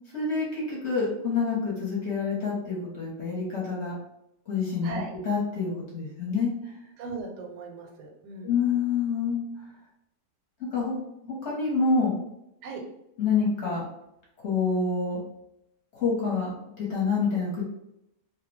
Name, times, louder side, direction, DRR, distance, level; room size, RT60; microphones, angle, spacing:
voice 1, 0.1-3.9 4.5-6.7 8.4-9.4 10.6-10.9 11.2-12.2 13.2-13.8 14.4-15.2 15.9-17.6, left 4 dB, 55° left, -5 dB, 0.9 m, -27 dB
voice 2, 7.0-8.6 12.6-12.8, right 3 dB, 85° right, 2 dB, 1.2 m, -38 dB
2.7 x 2.1 x 3.1 m, 0.82 s
omnidirectional pair, 1.7 m